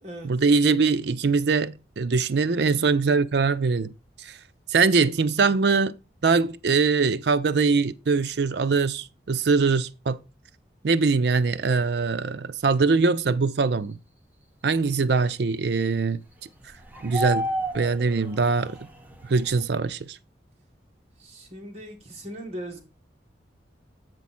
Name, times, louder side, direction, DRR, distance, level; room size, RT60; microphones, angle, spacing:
voice 1, 0.2-3.9 4.2-4.3 4.7-5.9 6.2-10.2 10.8-14.0 14.6-16.2 17.0-17.5 17.7-18.8 19.3-20.2, right 4 dB, 65° right, 0.5 m, -22 dB
sound 1, 16.6-19.6, equal, 10° right, 0.8 m, -32 dB
voice 2, 21.2-22.8, right 1 dB, 35° right, 2.0 m, -39 dB
8.2 x 4.7 x 4.2 m
head